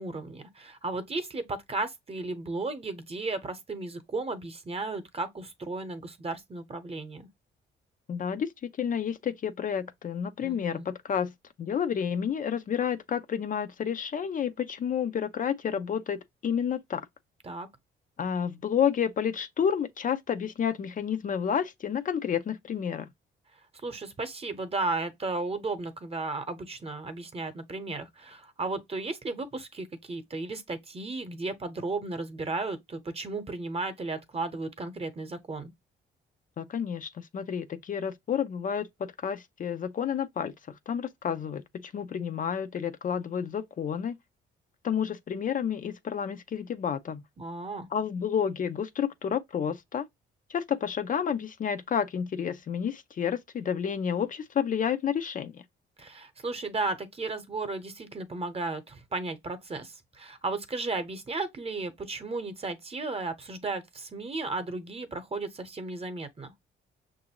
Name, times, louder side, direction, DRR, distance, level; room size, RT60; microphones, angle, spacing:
voice 1, 0.0-7.3 10.4-10.9 17.4-17.7 23.8-35.7 47.4-47.9 56.0-66.5, right 3 dB, 30° right, 0.9 m, -34 dB
voice 2, 8.1-11.3 11.6-17.1 18.2-23.1 36.6-44.2 44.8-47.2 47.9-50.1 50.5-55.6, left 8 dB, 40° left, 0.4 m, -30 dB
5.9 x 2.6 x 2.9 m
cardioid pair, 90°, 20 cm